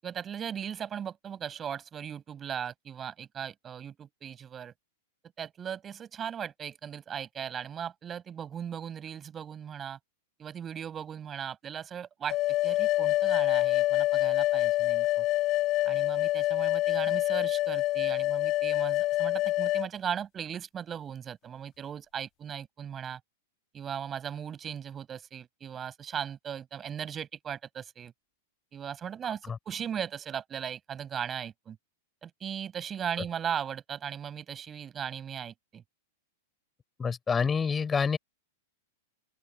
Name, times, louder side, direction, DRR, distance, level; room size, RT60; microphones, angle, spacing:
voice 1, 0.0-4.7 5.4-10.0 10.4-12.4 12.6-15.3 15.8-23.2 23.7-28.1 28.7-31.8 32.2-35.8, right 8 dB, 25° right, 7.3 m, -38 dB
sound 1, 12.3-19.9, left 17 dB, 35° left, 1.8 m, -26 dB
voice 2, 37.0-38.2, left 6 dB, 15° left, 4.8 m, -27 dB
open air
figure-of-eight pair, 100°, 0 cm